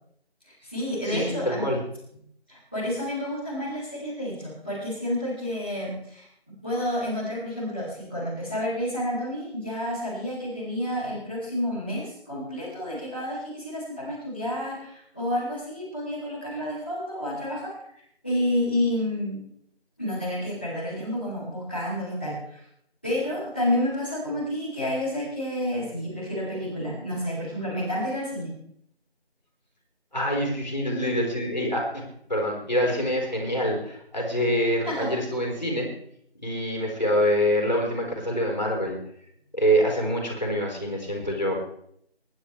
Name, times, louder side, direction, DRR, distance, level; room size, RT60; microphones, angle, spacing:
voice 1, 0.4-1.7 2.5-6.3 6.6-17.7 18.2-19.4 20.0-22.6 23.0-28.5 34.8-35.1, left 1 dB, 10° left, -14 dB, 3.0 m, -30 dB
voice 2, 1.0-1.8 2.1-2.2 30.1-32.0 32.3-35.9 36.4-39.0 39.5-41.6, equal, 40° left, 0 dB, 4.3 m, -25 dB
25.5 x 11.5 x 3.3 m, 0.71 s
figure-of-eight pair, 175°, 33 cm